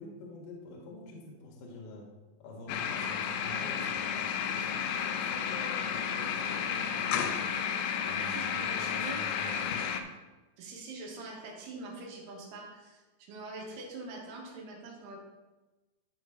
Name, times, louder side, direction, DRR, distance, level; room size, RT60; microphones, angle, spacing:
voice 1, 0.0-2.1 2.4-7.4 8.0-10.0, left 2 dB, 55° left, -2 dB, 2.4 m, -47 dB
sound 1, 2.7-10.0, left 7 dB, 85° left, 3.2 m, -32 dB
voice 2, 8.3-9.2 10.6-13.0 13.3-15.2, right 2 dB, 80° right, -1 dB, 3.9 m, -44 dB
13.0 x 5.2 x 3.0 m, 1.2 s
omnidirectional pair, 5.6 m